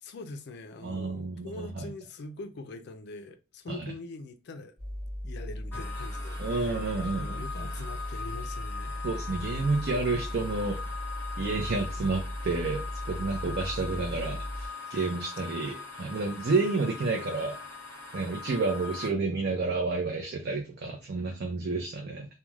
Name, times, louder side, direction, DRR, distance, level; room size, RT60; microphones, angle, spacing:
voice 1, 0.0-4.7 5.2-9.1 14.8-15.1, left 3 dB, 60° left, 0.4 m, -43 dB
voice 2, 0.8-1.9 3.7-3.8 6.4-7.7 9.0-10.8 11.4-17.6 18.1-22.3, right 3 dB, 55° right, 0.5 m, -30 dB
sound 1, 4.8-14.7, equal, 35° right, 1.0 m, -37 dB
sound 2, 5.7-19.1, left 4 dB, 10° left, 0.8 m, -41 dB
2.3 x 2.2 x 3.0 m
head